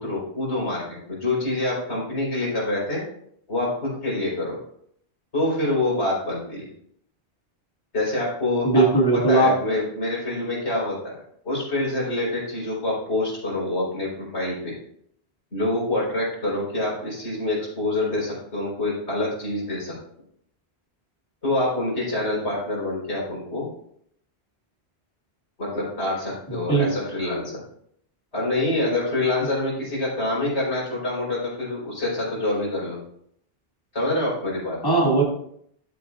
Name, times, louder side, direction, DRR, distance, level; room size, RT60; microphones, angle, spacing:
voice 1, 0.0-3.0 3.5-4.6 5.3-6.7 7.9-8.8 9.1-11.2 11.4-14.7 15.5-19.9 21.4-23.7 25.6-27.6 28.3-33.0 33.9-34.8, left 2 dB, 85° left, -5 dB, 4.5 m, -26 dB
voice 2, 8.6-9.5 26.5-26.9 34.8-35.2, right 2 dB, 20° left, -2 dB, 1.9 m, -19 dB
12.5 x 7.2 x 2.4 m, 0.68 s
omnidirectional pair, 1.1 m